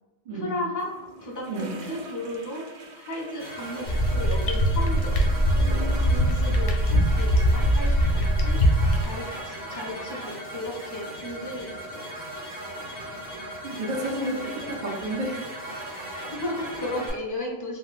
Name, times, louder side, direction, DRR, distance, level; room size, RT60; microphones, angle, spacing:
voice 1, 0.3-0.9 1.2-2.6 2.9-5.6 6.1-8.6 8.9-12.0 13.8-14.4 16.3-17.8, left 1 dB, 30° left, -2 dB, 0.4 m, -35 dB
sound 1, 0.8-8.8, right 2 dB, 85° right, 0.9 m, -43 dB
sound 2, 3.4-17.1, right 1 dB, 10° right, 1.0 m, -38 dB
sound 3, 3.9-9.0, equal, 65° left, 0.7 m, -22 dB
voice 2, 13.6-15.6, right 1 dB, 50° right, 0 dB, 0.5 m, -31 dB
3.8 x 2.0 x 2.4 m, 1.1 s
omnidirectional pair, 1.2 m